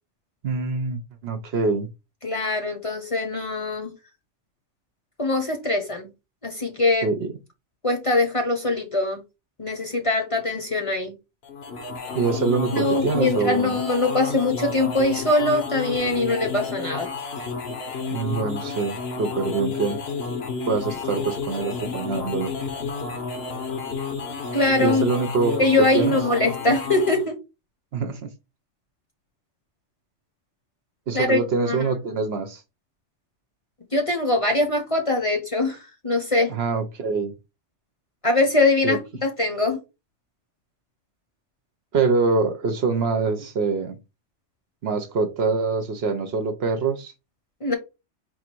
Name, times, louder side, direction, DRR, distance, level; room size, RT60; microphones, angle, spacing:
voice 1, 0.4-1.9 7.0-7.3 12.1-13.8 18.1-20.0 20.6-22.5 24.8-26.2 27.9-28.3 31.1-32.6 36.5-37.3 38.8-39.0 41.9-44.0 44.8-47.1, right 4 dB, 60° right, 0.9 m, -24 dB
voice 2, 2.2-3.9 5.2-6.1 6.4-7.1 7.8-9.2 9.6-11.1 12.7-17.1 24.5-25.0 25.6-27.4 31.1-31.4 31.7-31.9 33.9-36.5 38.2-39.8 47.6-47.7, left 2 dB, 30° left, 0.9 m, -22 dB
sound 1, 11.4-27.3, left 4 dB, 60° left, 1.1 m, -31 dB
4.3 x 2.5 x 4.4 m
omnidirectional pair, 1.2 m